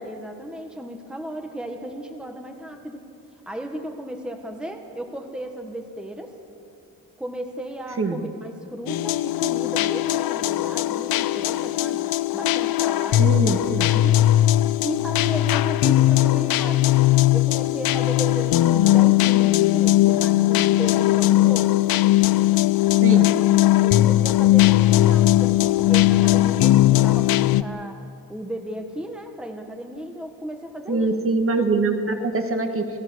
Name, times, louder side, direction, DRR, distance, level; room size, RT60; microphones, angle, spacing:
voice 1, 0.0-3.0 3.4-6.3 7.2-14.2 14.8-17.0 17.3-21.8 23.8-28.0 28.3-31.1, right 1 dB, 5° right, 3 dB, 1.4 m, -35 dB
sound 1, 8.9-27.6, left 15 dB, 80° left, 0.6 m, -19 dB
voice 2, 13.2-13.9 23.0-23.3 30.9-32.9, right 3 dB, 40° right, 5 dB, 1.7 m, -23 dB
30.0 x 17.0 x 6.4 m, 2.5 s
wide cardioid pair, 160°, 35 cm